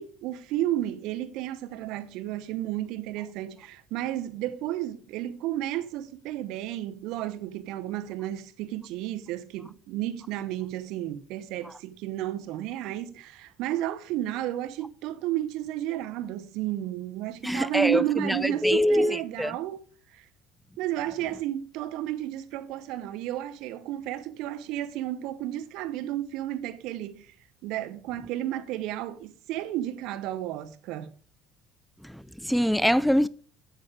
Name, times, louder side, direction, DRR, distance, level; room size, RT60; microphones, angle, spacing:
voice 1, 0.0-19.8 20.1-20.2 20.8-27.3 27.6-31.1, right 13 dB, 75° right, 0.9 m, -32 dB
voice 2, 17.4-19.5 32.0-33.3, equal, ahead, 0.4 m, -24 dB
9.5 x 8.8 x 5.0 m
supercardioid pair, 105°, 0 cm